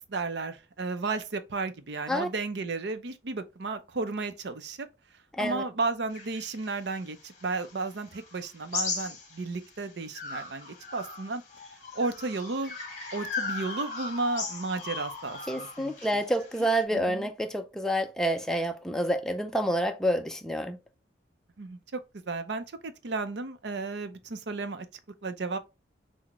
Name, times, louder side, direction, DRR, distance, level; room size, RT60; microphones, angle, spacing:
voice 1, 0.0-4.9 5.4-11.4 11.9-12.7 13.1-16.2 16.6-17.3 21.6-24.9 25.2-25.6, right 3 dB, 70° right, 0.6 m, -33 dB
sound 1, 6.1-9.7 10.1-16.8, left 4 dB, 40° left, 0.9 m, -38 dB
voice 2, 15.5-20.8, equal, 5° left, 0.3 m, -28 dB
5.8 x 2.1 x 2.9 m
head